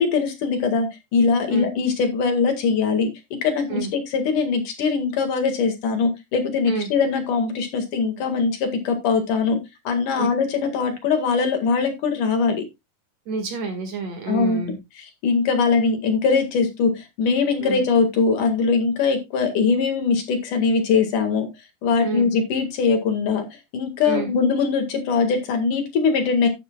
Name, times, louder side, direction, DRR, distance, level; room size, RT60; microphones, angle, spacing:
voice 1, 0.0-3.1 3.4-9.6 9.9-12.6 14.3-14.6 15.2-21.5 21.8-23.5 23.7-26.5, left 5 dB, 70° left, 6 dB, 3.3 m, -21 dB
voice 2, 13.3-14.8 17.6-17.8 22.0-22.3 24.0-24.3, right 4 dB, 55° right, 5 dB, 2.9 m, -28 dB
12.0 x 9.6 x 2.3 m, 0.22 s
omnidirectional pair, 3.9 m